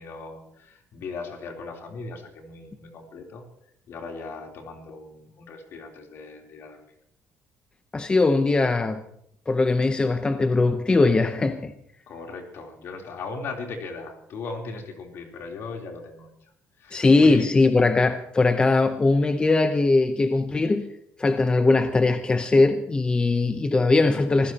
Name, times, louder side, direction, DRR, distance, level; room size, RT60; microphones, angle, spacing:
voice 1, 0.0-3.4 3.9-6.8 12.1-16.5 16.8-17.4, left 4 dB, 65° left, 3.6 m, -38 dB
voice 2, 7.9-9.0 9.5-11.7 16.9-20.9 21.2-24.5, left 3 dB, 20° left, 0.8 m, -20 dB
24.5 x 15.5 x 3.0 m
cardioid pair, 120°, 5 cm